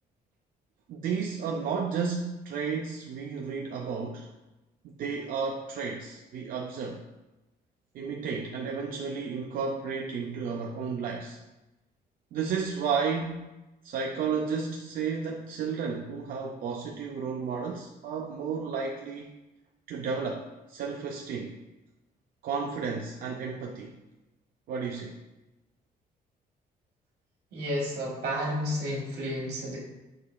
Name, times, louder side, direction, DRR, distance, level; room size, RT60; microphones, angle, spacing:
voice 1, 0.9-4.3 5.0-7.0 7.9-11.4 12.3-13.5 13.8-19.3 19.9-21.5 22.4-24.0 24.7-25.2, right 5 dB, 60° right, 0 dB, 0.4 m, -32 dB
voice 2, 27.5-29.8, equal, 75° right, -3 dB, 1.4 m, -31 dB
6.6 x 3.1 x 2.2 m, 1.0 s
cardioid pair, 175°, 17 cm